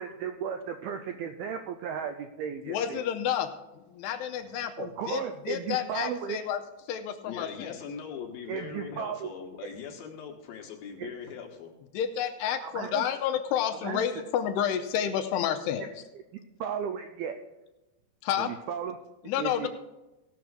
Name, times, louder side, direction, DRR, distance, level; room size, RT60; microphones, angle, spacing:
voice 1, 0.0-3.0 4.8-6.4 8.5-9.3 9.6-9.7 11.0-11.1 12.6-13.0 13.8-14.0 15.8-15.9 16.6-17.4 18.4-19.0 19.4-19.7, right 7 dB, 85° right, 7 dB, 2.2 m, -35 dB
voice 2, 2.7-6.6 6.9-7.8 11.9-15.8 18.2-18.5 19.2-19.7, left 9 dB, 85° left, 6 dB, 2.6 m, -30 dB
voice 3, 7.3-11.7, left 7 dB, 65° left, 2 dB, 2.7 m, -41 dB
17.5 x 6.1 x 4.8 m, 1.0 s
omnidirectional pair, 5.1 m